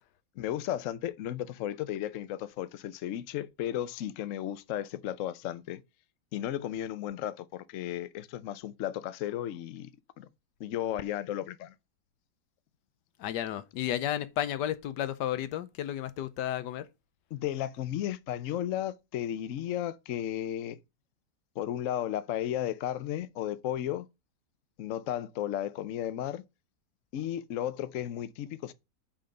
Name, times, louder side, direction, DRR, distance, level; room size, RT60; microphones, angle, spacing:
voice 1, 0.4-5.8 6.3-9.9 10.2-10.3 10.6-11.7 17.3-20.8 21.6-24.1 24.8-26.4 27.1-28.7, left 11 dB, 65° left, 0.9 m, -34 dB
voice 2, 13.2-16.8, left 11 dB, 80° left, 1.3 m, -32 dB
5.8 x 5.0 x 6.5 m
omnidirectional pair, 1.8 m